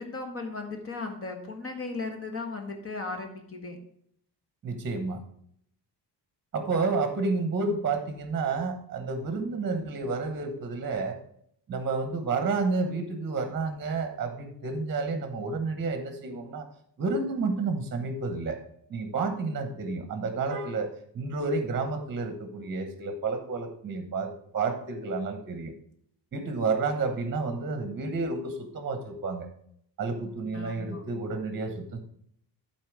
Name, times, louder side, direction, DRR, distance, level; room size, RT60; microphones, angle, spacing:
voice 1, 0.0-3.8 30.5-31.0, left 3 dB, 35° left, 4 dB, 1.5 m, -36 dB
voice 2, 4.6-5.2 6.5-11.2 11.7-16.7 17.0-18.6 18.9-20.9 21.1-25.7 26.3-29.5 30.0-32.0, right 4 dB, 30° right, 7 dB, 1.1 m, -30 dB
11.0 x 4.4 x 4.8 m, 0.68 s
cardioid pair, 160°, 40 cm